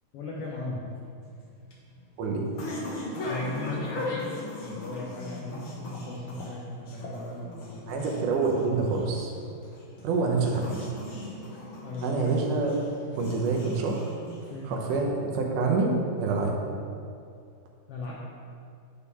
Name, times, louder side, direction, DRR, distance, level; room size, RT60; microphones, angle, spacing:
voice 1, 0.1-0.9 3.2-8.1 11.8-12.3 14.5-14.8 17.9-18.1, left 2 dB, 90° left, -4 dB, 1.3 m, -37 dB
sound 1, 1.2-14.8, left 2 dB, 60° left, 1.4 m, -39 dB
voice 2, 7.9-9.3 10.0-10.9 12.0-12.8 13.2-14.1 14.7-15.9 16.2-16.6, right 4 dB, 80° right, 0 dB, 2.3 m, -26 dB
9.4 x 3.7 x 4.1 m, 2.4 s
omnidirectional pair, 3.6 m